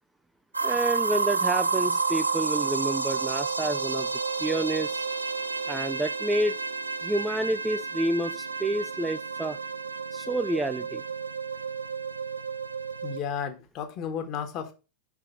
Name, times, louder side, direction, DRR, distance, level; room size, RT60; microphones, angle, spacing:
sound 1, 0.5-13.2, right 4 dB, 80° right, 0.6 m, -30 dB
voice 1, 0.6-4.1 4.4-5.0 5.7-6.6 7.0-9.6 10.1-11.0, right 1 dB, 10° right, 0.4 m, -29 dB
voice 2, 13.0-14.7, left 7 dB, 35° left, 1.4 m, -33 dB
5.8 x 4.8 x 5.7 m
figure-of-eight pair, 90°, 0 cm